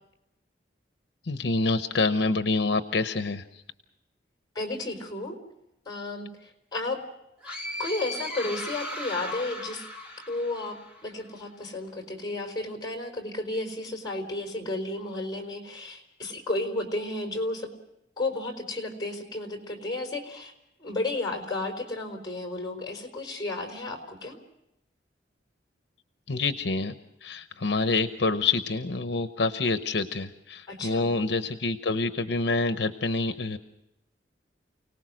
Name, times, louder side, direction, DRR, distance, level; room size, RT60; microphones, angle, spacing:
voice 1, 1.2-3.6 26.3-33.6, left 3 dB, 70° left, 10 dB, 0.9 m, -27 dB
voice 2, 4.5-5.4 5.9-7.0 7.8-9.9 10.3-17.7 18.2-20.5 20.8-24.4 30.7-31.1, left 2 dB, 20° left, 3 dB, 4.4 m, -33 dB
sound 1, 7.4-11.1, left 1 dB, 5° right, 2.4 m, -37 dB
29.5 x 18.5 x 6.3 m, 0.85 s
head